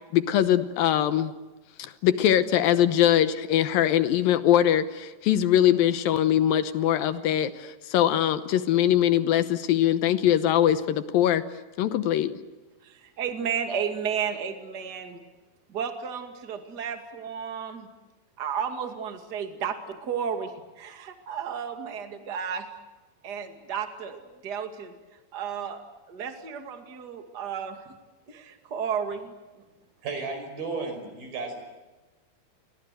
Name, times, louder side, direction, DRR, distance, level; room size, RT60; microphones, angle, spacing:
voice 1, 0.1-1.3 1.8-11.4 11.8-12.3, left 11 dB, 75° left, 12 dB, 2.6 m, -22 dB
voice 2, 12.8-15.2 15.7-17.9 18.4-22.7 23.2-24.9 25.3-28.0 28.3-29.6, right 7 dB, 30° right, 6 dB, 2.4 m, -33 dB
voice 3, 30.0-31.6, right 4 dB, 70° right, 6 dB, 7.1 m, -33 dB
29.5 x 23.5 x 8.0 m, 1.2 s
omnidirectional pair, 4.4 m